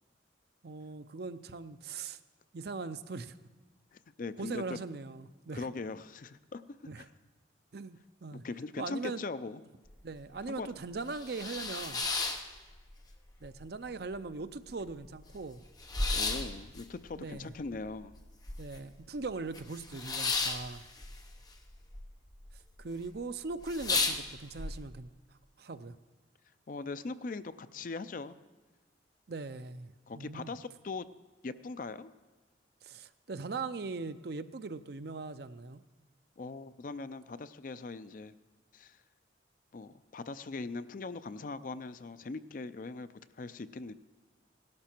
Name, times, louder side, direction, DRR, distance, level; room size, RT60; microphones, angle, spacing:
voice 1, 0.6-2.2 2.5-3.3 4.4-5.7 6.8-7.1 7.7-8.4 8.8-9.2 10.0-12.0 13.4-15.6 17.2-17.5 18.6-20.8 22.8-25.1 25.6-26.0 29.3-30.5 32.8-35.8, right 3 dB, 55° right, 12 dB, 0.5 m, -40 dB
voice 2, 3.9-4.8 5.5-6.6 7.0-7.1 8.3-9.6 10.5-10.7 16.1-18.1 26.7-28.4 30.1-31.1 31.4-32.1 36.4-38.3 38.7-39.0 39.7-43.1 43.4-43.9, left 3 dB, 45° left, 13 dB, 0.4 m, -40 dB
sound 1, 9.9-10.0 10.4-10.5 10.9-13.1 13.4-14.2 14.5-14.6 14.8-19.0 19.2-22.0 22.3-22.8 23.2-23.3 23.6-24.7, left 3 dB, 20° left, 0.9 m, -34 dB
17.0 x 12.0 x 4.5 m, 1.3 s
head